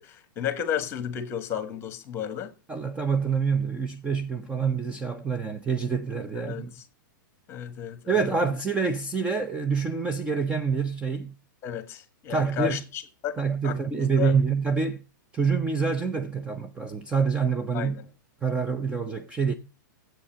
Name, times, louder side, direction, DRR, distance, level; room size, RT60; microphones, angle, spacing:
voice 1, 0.0-2.5 6.3-6.8 7.5-8.2 11.6-13.4 13.6-14.3 17.7-18.0, left 9 dB, 20° left, 1.5 m, -33 dB
voice 2, 2.7-6.7 8.1-11.3 12.3-12.8 13.4-15.0 15.3-18.0 18.4-19.5, right 5 dB, 10° right, 0.5 m, -26 dB
7.8 x 7.0 x 7.7 m
hypercardioid pair, 155°, 11 cm